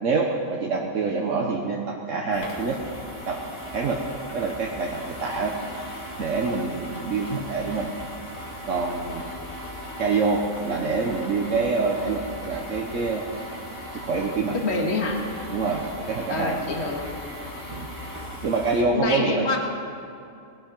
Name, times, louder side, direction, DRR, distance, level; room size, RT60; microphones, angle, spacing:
voice 1, 0.0-2.8 3.3-3.4 3.7-4.0 4.3-5.5 6.2-7.9 8.7-9.2 10.0-13.2 13.9-14.5 15.5-16.6 17.7-17.9 18.4-19.6, right 4 dB, 65° right, 0 dB, 1.4 m, -26 dB
sound 1, 2.3-18.8, equal, 80° left, 3.0 m, -38 dB
voice 2, 14.5-15.2 16.3-17.1 18.9-19.6, left 3 dB, 50° left, 1 dB, 1.9 m, -26 dB
19.5 x 10.5 x 5.3 m, 2.5 s
omnidirectional pair, 1.4 m